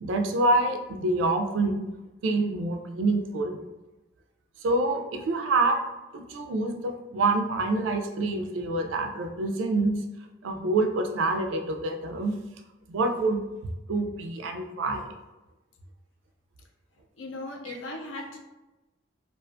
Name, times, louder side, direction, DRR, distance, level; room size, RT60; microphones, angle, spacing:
voice 1, 0.0-1.9 2.2-3.6 4.6-5.8 6.1-10.0 10.4-12.4 12.9-13.4 13.9-15.1 17.7-17.8, right 2 dB, 85° right, 5 dB, 0.3 m, -26 dB
voice 2, 17.2-18.4, left 2 dB, 80° left, 2 dB, 0.4 m, -37 dB
2.4 x 2.3 x 2.4 m, 1.1 s
head